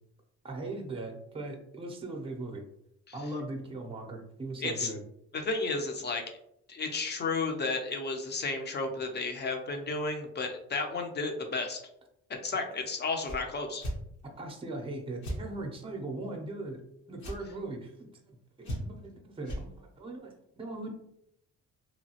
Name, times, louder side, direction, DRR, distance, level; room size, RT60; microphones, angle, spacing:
voice 1, 0.4-2.6 3.1-5.0 14.4-16.8 17.1-20.9, right 2 dB, 20° right, 3 dB, 0.6 m, -39 dB
voice 2, 4.6-4.9 5.3-6.2 6.7-11.8 12.3-13.8, left 3 dB, 35° left, 4 dB, 0.6 m, -32 dB
sound 1, 13.2-13.4 13.8-14.0 15.2-15.4 17.2-17.4 18.6-19.1 19.4-19.6, equal, 75° left, 1.1 m, -35 dB
3.0 x 2.3 x 2.8 m, 0.76 s
cardioid pair, 90°, 30 cm